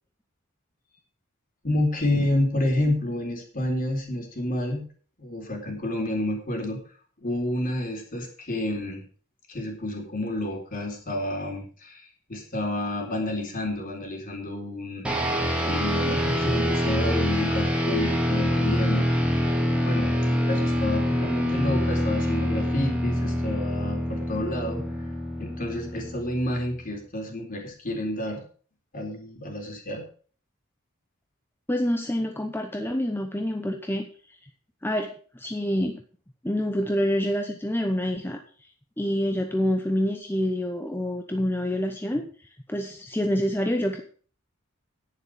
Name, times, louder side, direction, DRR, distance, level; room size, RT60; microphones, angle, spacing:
voice 1, 1.6-4.8 5.2-6.8 7.2-9.0 9.5-15.0 15.6-19.0 19.8-20.1 20.5-24.8 25.4-28.4 28.9-30.0, left 1 dB, 40° left, 2 dB, 4.0 m, -29 dB
sound 1, 15.0-26.7, equal, 5° right, 2.5 m, -25 dB
voice 2, 31.7-34.1 34.8-36.0 36.4-38.4 39.0-44.0, equal, 10° left, 5 dB, 0.9 m, -27 dB
10.5 x 9.8 x 5.1 m, 0.42 s
head